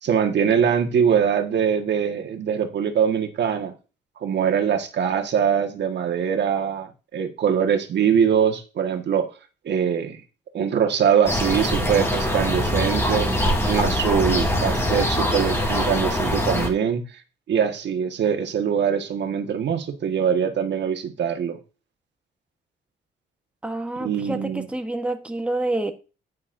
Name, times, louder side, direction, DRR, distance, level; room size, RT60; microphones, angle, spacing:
voice 1, 0.0-3.7 4.2-9.3 9.6-10.2 10.5-13.3 13.7-17.0 17.5-21.6 24.0-24.7, right 7 dB, 60° right, 1.6 m, -22 dB
sound 1, 11.2-16.7, left 1 dB, 15° left, 3.4 m, -23 dB
voice 2, 23.6-25.9, right 2 dB, 5° right, 1.2 m, -28 dB
9.9 x 9.5 x 2.6 m
cardioid pair, 90°, 20 cm